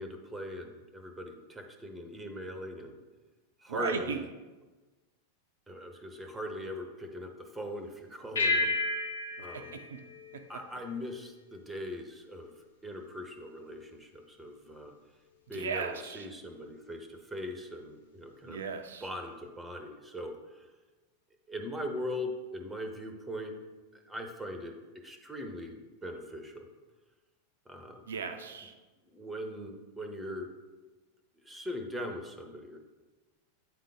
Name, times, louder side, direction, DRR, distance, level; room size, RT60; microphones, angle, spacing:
voice 1, 0.0-3.0 3.6-4.3 5.7-8.8 9.4-9.8 10.5-12.5 12.8-14.9 15.5-18.6 19.0-20.7 21.5-23.5 23.9-24.7 25.0-26.7 27.7-28.0 29.1-30.5 31.4-32.8, equal, 10° right, 5 dB, 0.8 m, -40 dB
voice 2, 3.7-4.2 9.4-10.0 10.3-10.4 15.5-16.3 18.5-19.0 28.1-28.7, right 6 dB, 65° right, 6 dB, 0.4 m, -37 dB
sound 1, 8.3-11.1, left 3 dB, 65° left, 0.8 m, -32 dB
8.7 x 3.8 x 3.5 m, 1.2 s
figure-of-eight pair, 90°, 0 cm